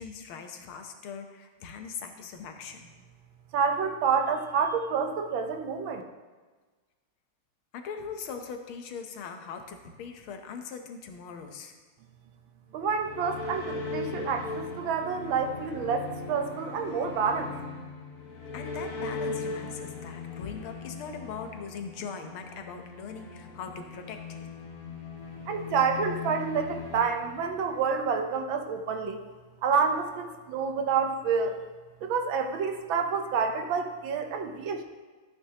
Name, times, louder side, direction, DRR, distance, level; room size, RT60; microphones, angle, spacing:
voice 1, 0.0-2.9 7.7-11.7 18.5-24.5, left 6 dB, 80° left, 5 dB, 1.8 m, -40 dB
voice 2, 3.5-6.0 12.7-17.5 25.5-29.2 29.6-31.5 32.0-34.8, right 6 dB, 75° right, 5 dB, 1.5 m, -28 dB
sound 1, 12.7-28.0, left 3 dB, 45° left, 1.6 m, -39 dB
13.0 x 8.7 x 2.9 m, 1.4 s
omnidirectional pair, 2.3 m